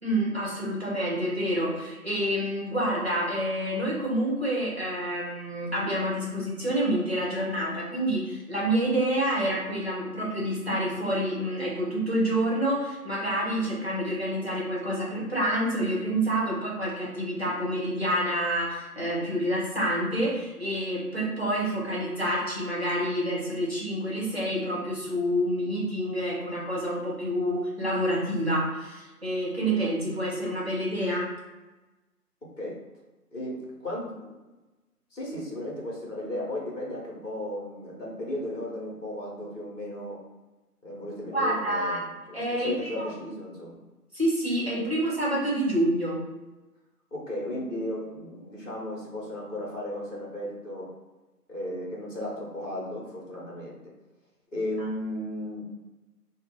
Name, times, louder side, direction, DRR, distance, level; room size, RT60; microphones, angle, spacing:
voice 1, 0.0-31.3 41.3-42.1 42.3-43.1 44.1-46.2 54.8-54.9, right 1 dB, 40° right, -5 dB, 0.8 m, -28 dB
voice 2, 33.3-34.3 35.1-40.2 40.8-43.8 47.1-50.9 51.5-53.8 54.5-55.7, left 1 dB, 50° left, -4 dB, 1.0 m, -35 dB
2.5 x 2.1 x 3.6 m, 1.1 s
figure-of-eight pair, 175°, 48 cm